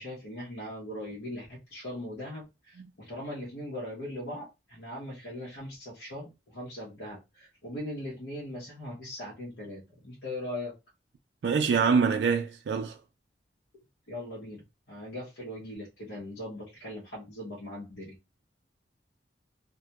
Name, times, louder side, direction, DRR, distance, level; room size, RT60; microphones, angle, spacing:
voice 1, 0.0-10.7 14.1-18.2, left 1 dB, 75° left, 0.7 m, -40 dB
voice 2, 11.4-13.0, right 5 dB, 70° right, 0.3 m, -25 dB
2.1 x 2.1 x 2.7 m
head